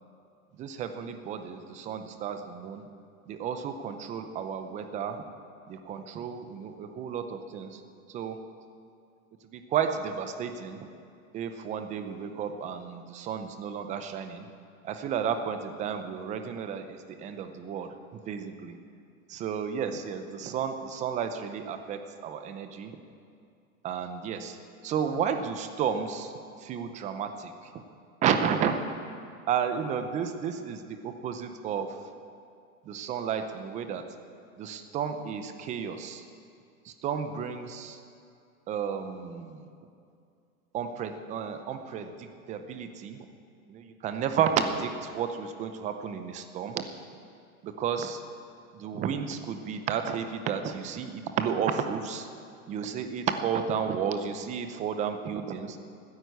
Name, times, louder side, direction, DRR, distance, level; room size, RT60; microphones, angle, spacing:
voice 1, 0.5-2.8 3.3-5.2 5.7-7.8 8.1-8.4 9.4-10.9 11.3-14.5 14.8-18.8 19.3-23.0 23.8-24.6 24.8-27.8 28.2-28.9 29.5-32.1 32.8-34.0 34.6-36.2 36.8-38.0 38.7-39.9 40.7-43.3 43.7-46.9 47.6-48.2 48.7-52.3 52.7-55.8, right 7 dB, 15° right, 8 dB, 0.7 m, -32 dB
14.5 x 9.7 x 8.0 m, 2.4 s
hypercardioid pair, 145°, 43 cm